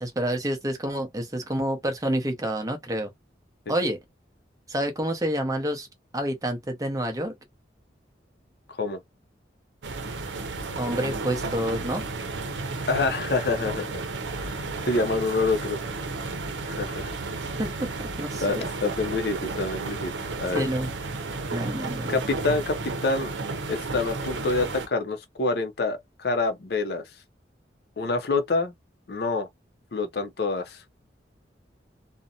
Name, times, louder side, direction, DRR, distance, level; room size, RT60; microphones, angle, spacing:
voice 1, 0.0-3.1 3.7-4.0 4.7-5.9 6.1-7.3 10.8-12.0 17.6-18.7 20.5-20.9 21.5-22.1, right 1 dB, 20° right, 0.6 m, -28 dB
voice 2, 8.7-9.0 12.9-14.0 14.9-15.8 16.7-17.1 18.4-20.1 20.4-20.7 22.1-23.3 23.7-27.0 28.0-28.7 29.1-29.5 29.9-30.8, left 3 dB, 60° left, 0.5 m, -26 dB
sound 1, 9.8-24.9, right 3 dB, 90° right, 0.6 m, -33 dB
2.6 x 2.0 x 2.6 m
head